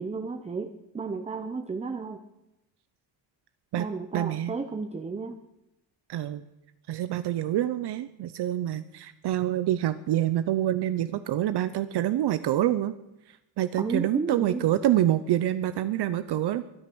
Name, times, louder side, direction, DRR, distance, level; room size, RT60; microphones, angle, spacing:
voice 1, 0.0-2.2 3.8-5.3 13.8-14.6, right 4 dB, 15° right, 7 dB, 0.7 m, -33 dB
voice 2, 4.1-4.5 6.1-6.4 6.9-12.9 13.6-16.6, right 12 dB, 60° right, 12 dB, 0.8 m, -26 dB
23.0 x 9.5 x 6.1 m, 0.92 s
cardioid pair, 165°, 45 cm